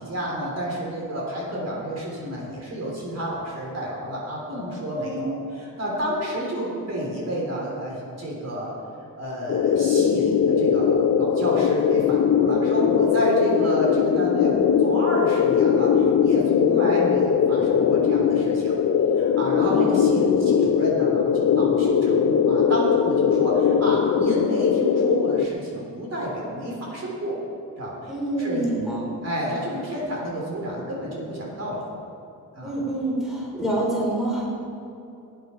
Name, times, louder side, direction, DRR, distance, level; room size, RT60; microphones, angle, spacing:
voice 1, 0.0-8.7 9.2-18.7 19.1-27.4 27.8-28.7 29.2-31.8 32.5-32.7, right 1 dB, 45° right, -4 dB, 3.8 m, -30 dB
voice 2, 5.0-5.3 19.7-20.4 28.1-29.0 32.6-34.4, right 1 dB, ahead, -5 dB, 3.8 m, -27 dB
sound 1, 9.5-25.5, left 7 dB, 45° left, 0.5 m, -20 dB
18.5 x 9.6 x 4.6 m, 2.7 s
wide cardioid pair, 150°, 35 cm